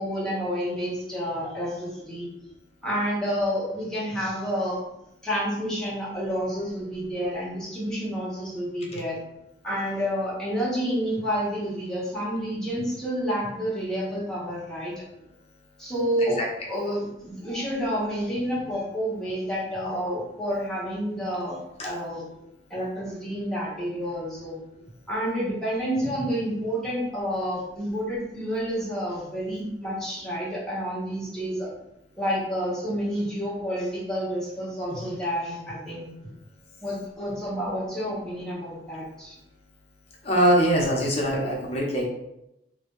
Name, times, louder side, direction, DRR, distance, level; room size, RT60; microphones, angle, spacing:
voice 1, 0.0-2.3 2.8-4.8 5.2-9.2 9.6-15.0 15.8-16.4 16.7-22.2 22.7-24.6 25.1-31.7 32.2-36.1 36.8-39.4, equal, 5° left, -8 dB, 1.3 m, -29 dB
voice 2, 40.2-42.1, equal, 35° left, -2 dB, 0.9 m, -22 dB
3.2 x 2.7 x 3.9 m, 0.85 s
head